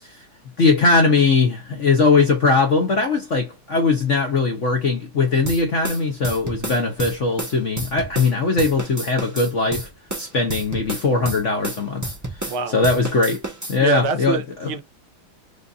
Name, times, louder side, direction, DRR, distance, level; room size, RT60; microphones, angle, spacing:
voice 1, 0.6-9.9 10.2-12.1 12.7-13.4 13.7-14.4, left 4 dB, 55° left, 0.9 m, -20 dB
sound 1, 5.4-8.3 8.6-12.6 12.8-13.8, right 2 dB, 15° right, 0.6 m, -30 dB
voice 2, 12.5-12.8 13.8-14.8, right 4 dB, 85° right, 1.7 m, -25 dB
5.1 x 2.5 x 2.6 m
omnidirectional pair, 2.3 m